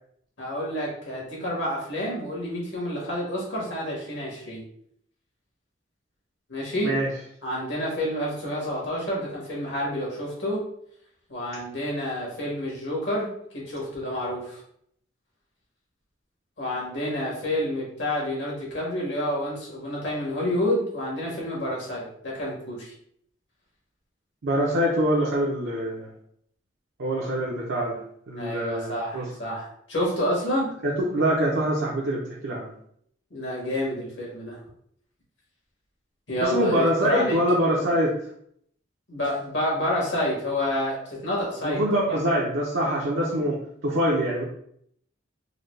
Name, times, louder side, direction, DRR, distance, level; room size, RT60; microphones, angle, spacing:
voice 1, 0.4-4.6 6.5-6.9 7.4-10.6 11.3-13.3 13.5-14.6 16.6-22.9 28.3-30.7 33.3-34.6 36.3-37.4 39.1-41.8 42.1-42.2, left 1 dB, 70° left, -4 dB, 1.4 m, -29 dB
voice 2, 24.4-26.1 27.0-28.0 28.3-29.3 30.8-32.7 36.4-38.2 41.6-44.4, equal, 75° right, -5 dB, 0.7 m, -24 dB
3.9 x 2.2 x 3.2 m, 0.67 s
head